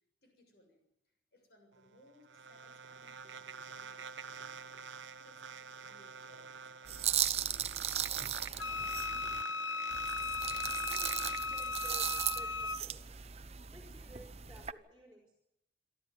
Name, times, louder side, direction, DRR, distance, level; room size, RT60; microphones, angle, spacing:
voice 1, 0.2-0.8 1.3-9.5, left 1 dB, 55° left, 3 dB, 6.8 m, -66 dB
sound 1, 1.7-12.2, right 6 dB, 85° right, 1.2 m, -48 dB
sound 2, 6.9-9.4 9.9-14.7, right 10 dB, 35° right, 0.8 m, -37 dB
Wind instrument woodwind instrument, 8.6-12.8, left 4 dB, 90° left, 0.7 m, -37 dB
voice 2, 10.9-13.0 13.7-15.3, right 1 dB, 5° right, 0 dB, 4.2 m, -56 dB
28.0 x 12.5 x 9.7 m, 0.82 s
head